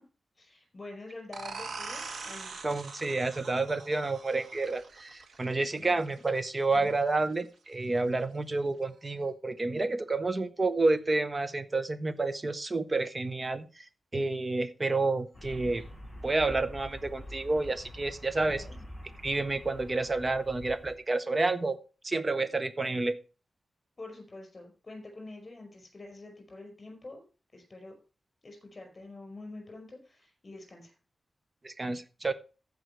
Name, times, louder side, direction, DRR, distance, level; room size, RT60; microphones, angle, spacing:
voice 1, 0.4-2.8 5.8-6.0 6.7-6.9 18.4-18.8 24.0-27.2 27.5-27.9 28.4-30.9, left 2 dB, 30° left, 3 dB, 5.1 m, -46 dB
sound 1, 1.3-6.7, right 4 dB, 90° right, 1.4 m, -43 dB
voice 2, 2.6-13.8 14.1-15.8 16.2-18.6 19.2-21.8 22.0-23.2 31.6-32.3, right 3 dB, 30° right, 12 dB, 0.8 m, -29 dB
sound 2, 15.3-20.9, equal, 5° right, 5.9 m, -46 dB
15.0 x 5.2 x 4.5 m, 0.34 s
wide cardioid pair, 130°, 0 cm